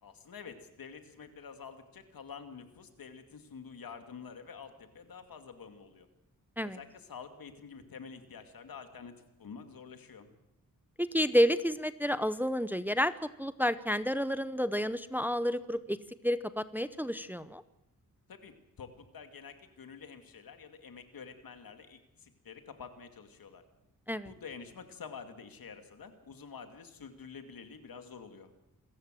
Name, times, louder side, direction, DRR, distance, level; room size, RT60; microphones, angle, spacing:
voice 1, 0.0-6.1 6.6-10.3 18.3-23.6 24.2-28.5, left 6 dB, 75° left, 7 dB, 2.4 m, -48 dB
voice 2, 11.0-13.1 13.4-16.0 16.2-17.6 24.1-24.3, equal, 5° right, 13 dB, 0.7 m, -30 dB
27.0 x 14.5 x 7.7 m, 0.85 s
wide cardioid pair, 110°, 35 cm